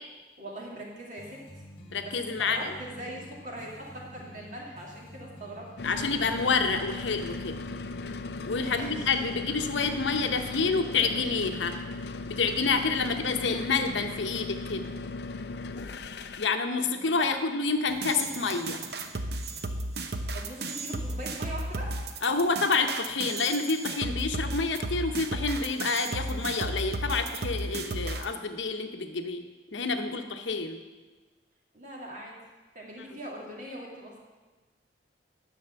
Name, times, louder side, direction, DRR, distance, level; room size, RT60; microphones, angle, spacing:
voice 1, 0.4-1.6 2.0-2.1 2.4-5.7 8.6-9.1 16.8-17.1 20.3-22.0 31.7-32.4 32.7-34.2, right 1 dB, 40° right, -2 dB, 2.3 m, -41 dB
sound 1, 1.2-10.7, left 1 dB, 30° left, 1.6 m, -49 dB
voice 2, 1.9-2.7 5.8-7.6 8.5-11.7 12.3-14.9 16.4-18.8 22.2-29.4 29.7-30.8, left 4 dB, 80° left, 6 dB, 0.9 m, -28 dB
sound 2, 5.8-16.5, left 3 dB, 60° left, 0.5 m, -37 dB
sound 3, 17.9-28.3, right 2 dB, 55° right, 0.8 m, -34 dB
10.5 x 6.3 x 6.9 m, 1.3 s
head